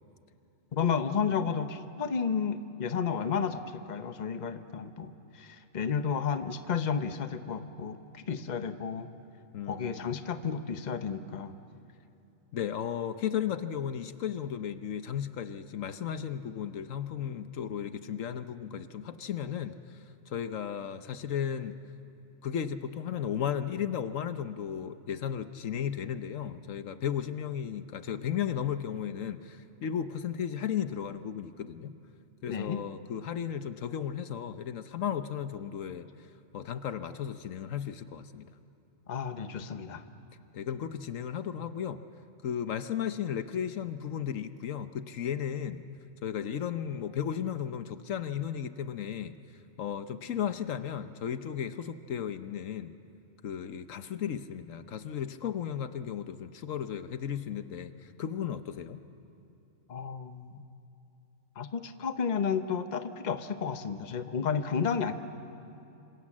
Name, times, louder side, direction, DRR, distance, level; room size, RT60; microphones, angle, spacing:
voice 1, 0.7-9.1 9.7-11.5 32.5-32.8 39.1-40.0 59.9-60.6 61.6-65.1, left 6 dB, 35° left, 9 dB, 1.0 m, -32 dB
voice 2, 9.5-10.1 12.5-21.7 22.4-31.9 32.4-36.1 36.5-38.5 40.5-42.0 42.4-45.8 46.2-49.3 49.8-52.9 53.4-59.0, left 9 dB, 75° left, 11 dB, 1.2 m, -35 dB
27.0 x 26.5 x 7.4 m, 2.7 s
omnidirectional pair, 1.4 m